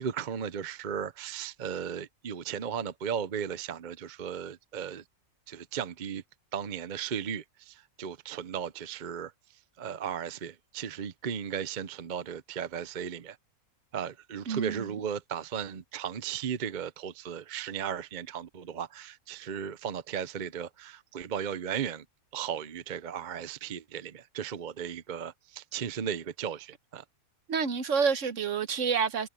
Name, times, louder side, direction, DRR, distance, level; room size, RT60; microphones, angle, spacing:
voice 1, 0.0-5.0 5.5-6.2 6.5-9.3 9.8-13.4 13.9-22.0 22.3-27.0, right 8 dB, 45° right, 0.7 m, -36 dB
voice 2, 14.5-14.9 27.5-29.3, right 6 dB, 60° right, 1.3 m, -28 dB
omnidirectional pair, 1.5 m